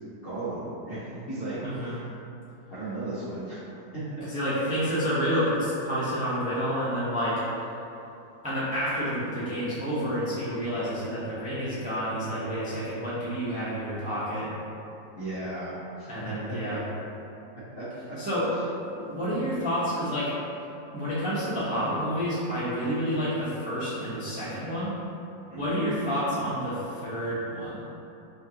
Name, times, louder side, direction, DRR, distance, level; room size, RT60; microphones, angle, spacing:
voice 1, 0.2-2.0 2.7-3.6 3.9-4.5 15.1-16.8 17.6-18.2 25.5-25.8, right 2 dB, 45° left, -12 dB, 0.8 m, -36 dB
voice 2, 1.6-2.0 4.3-7.7 8.4-14.5 16.1-16.8 18.2-18.6 18.8-20.3 20.6-20.7 20.9-24.9 25.6-27.8, equal, 10° right, -11 dB, 0.4 m, -29 dB
5.4 x 2.5 x 2.9 m, 2.9 s
omnidirectional pair, 1.9 m